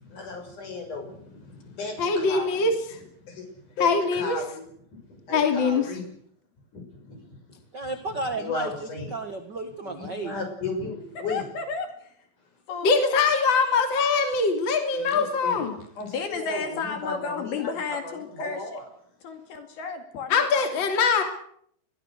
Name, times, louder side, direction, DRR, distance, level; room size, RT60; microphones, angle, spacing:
voice 1, 0.1-2.7 3.3-3.5 3.8-4.6 4.9-6.1 6.7-7.4 7.8-7.9 8.4-9.1 9.8-11.4 15.0-17.6 18.0-18.8, left 3 dB, 50° left, 4 dB, 8.1 m, -35 dB
voice 2, 2.0-2.7 3.8-4.4 5.3-5.9 12.8-15.7 20.3-21.2, left 4 dB, 30° left, 5 dB, 3.2 m, -22 dB
voice 3, 7.7-10.3, right 2 dB, 50° right, 7 dB, 1.3 m, -33 dB
voice 4, 11.2-12.1 12.7-13.1 16.0-18.8 19.2-20.7, left 5 dB, 70° left, 6 dB, 4.3 m, -33 dB
28.0 x 21.5 x 6.6 m, 0.66 s
omnidirectional pair, 4.8 m